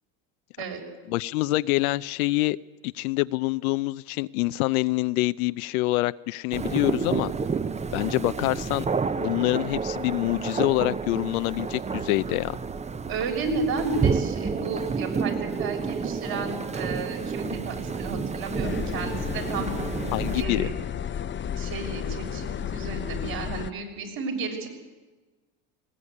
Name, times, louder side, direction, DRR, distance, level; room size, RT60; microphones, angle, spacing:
voice 1, 1.1-2.6 2.8-7.3 7.9-8.9 9.2-12.6 20.1-20.7, left 20 dB, 90° left, 13 dB, 0.6 m, -26 dB
sound 1, 6.5-20.4, right 5 dB, 15° right, 0.7 m, -30 dB
voice 2, 13.1-19.7 20.3-20.7 21.5-24.7, right 4 dB, 55° right, 3 dB, 6.5 m, -32 dB
sound 2, 18.6-23.7, left 8 dB, 25° left, 0.7 m, -32 dB
20.0 x 18.0 x 9.7 m, 1.3 s
supercardioid pair, 100°, 42 cm